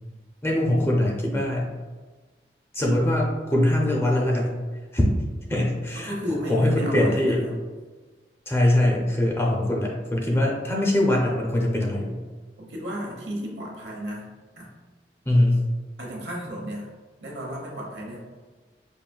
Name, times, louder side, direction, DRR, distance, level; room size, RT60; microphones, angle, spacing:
voice 1, 0.4-1.7 2.7-4.6 4.9-5.1 5.5-6.1 6.5-7.4 8.5-12.2 15.3-15.6, left 1 dB, 15° left, -2 dB, 0.5 m, -22 dB
voice 2, 6.0-7.6 12.6-14.3 14.6-14.7 16.0-16.9 17.2-18.2, equal, 75° right, -2 dB, 1.0 m, -33 dB
5.2 x 2.6 x 2.3 m, 1.3 s
head